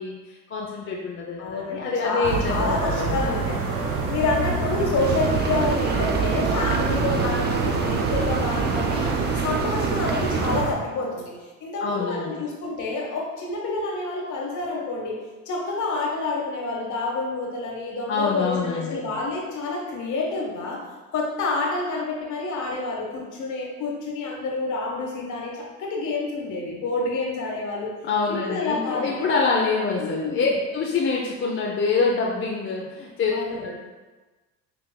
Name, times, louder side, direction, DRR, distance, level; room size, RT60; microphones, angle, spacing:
voice 1, 0.0-3.5 11.8-12.4 18.1-19.1 28.0-33.3 33.6-33.8, left 4 dB, 35° left, -3 dB, 0.6 m, -26 dB
voice 2, 1.4-3.6 4.1-9.0 9.3-15.2 15.4-20.8 21.1-27.9 28.3-29.1 30.0-30.5 33.3-33.7, left 3 dB, 55° left, -2 dB, 1.3 m, -28 dB
sound 1, 2.2-10.7, right 4 dB, 70° right, 1.0 m, -27 dB
sound 2, 5.0-10.6, right 5 dB, 30° right, 0.4 m, -27 dB
5.9 x 3.3 x 2.2 m, 1.2 s
supercardioid pair, 75°, 36 cm